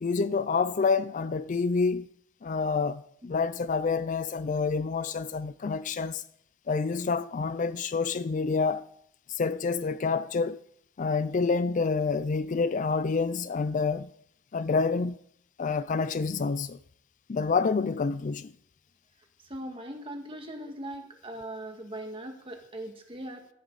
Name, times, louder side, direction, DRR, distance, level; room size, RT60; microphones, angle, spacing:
voice 1, 0.0-2.1 2.4-6.2 6.7-8.9 9.3-10.6 11.0-14.1 14.5-15.2 15.6-16.8 17.3-18.5, left 4 dB, 40° left, 0.4 m, -28 dB
voice 2, 19.4-23.5, right 1 dB, 25° right, 1.9 m, -40 dB
16.5 x 11.0 x 4.0 m
head